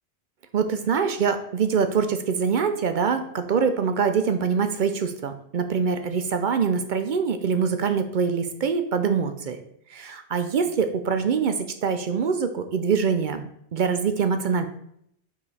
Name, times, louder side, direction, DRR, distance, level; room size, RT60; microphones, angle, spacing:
voice 1, 0.5-9.6 9.9-14.7, right 6 dB, 55° right, 8 dB, 0.6 m, -24 dB
5.4 x 4.9 x 4.0 m, 0.72 s
omnidirectional pair, 1.1 m